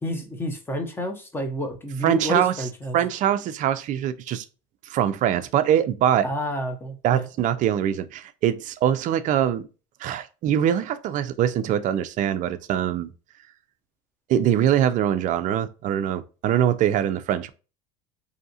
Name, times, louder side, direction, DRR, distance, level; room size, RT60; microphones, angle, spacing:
voice 1, 0.0-3.0 6.2-7.3, equal, 10° left, 0.6 m, -30 dB
voice 2, 2.0-2.7 2.9-4.4 4.9-6.3 7.0-9.7 10.0-13.1 14.3-17.5, right 10 dB, 40° right, 0.4 m, -23 dB
2.7 x 2.4 x 2.7 m
supercardioid pair, 115°, 19 cm